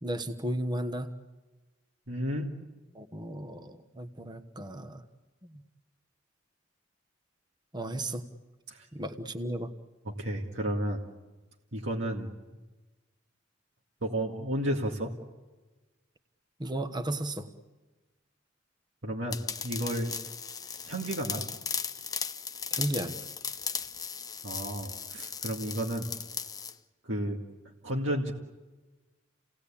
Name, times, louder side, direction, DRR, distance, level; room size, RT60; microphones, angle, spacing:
voice 1, 0.0-1.1 2.9-5.0 5.5-5.6 7.7-8.2 8.9-9.7 16.6-17.5 22.7-23.2, right 1 dB, 20° right, 8 dB, 1.2 m, -34 dB
voice 2, 2.1-2.5 8.7-8.9 10.0-11.0 11.7-12.3 14.0-15.1 19.0-20.2 20.9-21.4 24.4-26.1 27.0-27.4 27.8-28.3, right 1 dB, 70° right, -1 dB, 2.1 m, -32 dB
sound 1, 19.3-26.7, left 6 dB, 20° left, 0.8 m, -37 dB
30.0 x 18.5 x 8.6 m, 1.2 s
head